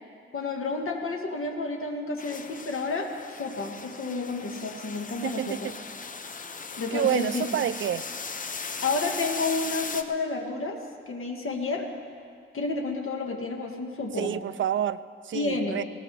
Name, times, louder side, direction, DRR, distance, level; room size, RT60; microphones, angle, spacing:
voice 1, 0.3-3.1 3.4-5.7 6.8-7.5 8.8-10.8 11.1-11.9 12.5-14.4 15.3-15.8, left 3 dB, 80° left, 2 dB, 1.6 m, -30 dB
sound 1, 2.2-10.0, left 4 dB, 40° left, 0.6 m, -38 dB
voice 2, 5.2-5.8 6.9-8.0 14.2-15.8, right 10 dB, 65° right, 13 dB, 0.4 m, -28 dB
19.0 x 18.5 x 3.3 m, 2.2 s
wide cardioid pair, 145°, 21 cm